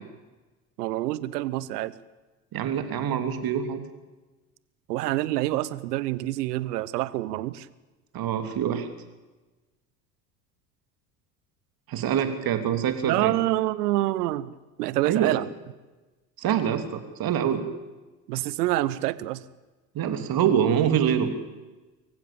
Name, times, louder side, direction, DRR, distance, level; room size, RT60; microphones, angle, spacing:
voice 1, 0.8-1.9 4.9-7.7 13.1-14.5 14.8-15.4 18.3-19.4, right 16 dB, 70° right, 17 dB, 1.1 m, -27 dB
voice 2, 2.5-3.8 8.1-8.9 11.9-13.4 15.0-15.3 16.4-17.6 19.9-21.3, right 9 dB, 45° right, 7 dB, 3.1 m, -25 dB
24.5 x 15.5 x 8.7 m, 1.2 s
hypercardioid pair, 70°, 48 cm